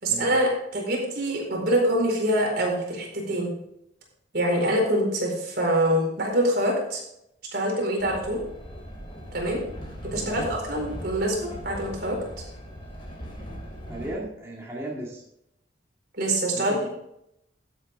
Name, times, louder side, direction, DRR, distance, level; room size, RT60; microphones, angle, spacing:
voice 1, 0.0-3.5 4.3-7.0 7.5-8.4 9.3-9.6 10.0-12.2 16.1-16.9, right 1 dB, 60° right, -1 dB, 4.4 m, -25 dB
Train, 8.0-14.2, equal, 30° left, 2.9 m, -39 dB
voice 2, 10.2-10.5 13.9-15.2 16.5-16.9, right 1 dB, 15° right, -5 dB, 2.0 m, -36 dB
13.5 x 8.4 x 3.5 m, 0.79 s
head